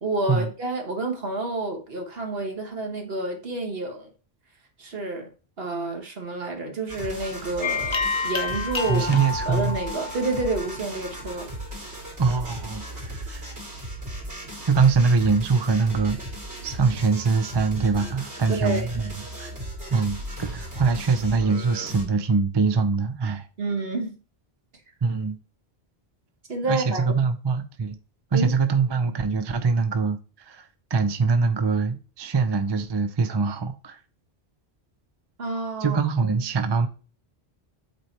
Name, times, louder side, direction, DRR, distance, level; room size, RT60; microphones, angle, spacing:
voice 1, 0.0-4.1 4.8-5.3 5.6-9.0 9.4-11.5 18.5-18.9 23.6-24.2 26.5-27.0 28.3-28.5 35.4-36.0, right 2 dB, 65° right, 1.6 m, -29 dB
sound 1, 6.9-22.0, right 1 dB, 85° right, 2.8 m, -37 dB
sound 2, 7.6-11.1, left 4 dB, 30° left, 0.8 m, -29 dB
voice 2, 8.9-9.8 12.2-13.5 14.6-16.2 16.6-19.1 19.4-19.5 19.9-23.5 25.0-25.4 26.7-28.0 28.3-34.0 35.8-36.9, right 4 dB, 30° right, 0.5 m, -23 dB
8.0 x 2.8 x 4.5 m
omnidirectional pair, 1.1 m